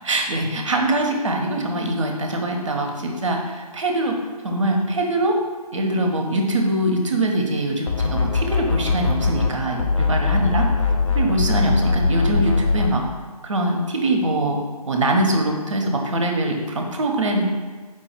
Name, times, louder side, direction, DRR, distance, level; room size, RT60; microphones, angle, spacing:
voice 1, 0.0-5.4 5.7-10.7 11.1-13.0 13.4-14.6 14.8-17.4, right 1 dB, 50° right, 2 dB, 0.6 m, -23 dB
sound 1, 7.9-9.5 9.8-12.9, left 4 dB, 50° left, 0.6 m, -21 dB
4.5 x 2.3 x 4.3 m, 1.4 s
figure-of-eight pair, 150°, 20 cm